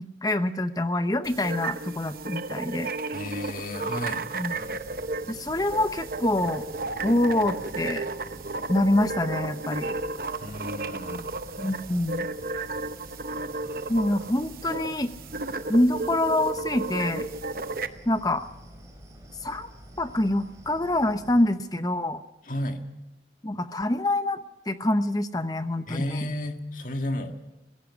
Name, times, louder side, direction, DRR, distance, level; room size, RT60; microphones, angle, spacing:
voice 1, 0.2-2.9 4.3-4.6 5.3-6.7 7.0-8.0 8.7-9.9 11.6-12.3 13.9-15.1 15.7-17.3 18.1-18.5 19.4-19.7 20.0-22.2 23.4-24.4 24.7-26.2, left 1 dB, 20° left, 10 dB, 0.8 m, -25 dB
sound 1, 1.2-17.9, right 3 dB, 50° right, 0.8 m, -33 dB
voice 2, 3.1-4.2 10.4-11.3 22.4-22.8 25.9-27.4, left 1 dB, 45° left, 5 dB, 1.8 m, -32 dB
sound 2, 4.5-21.4, equal, 20° right, 3.5 m, -48 dB
16.5 x 16.5 x 9.6 m, 0.96 s
head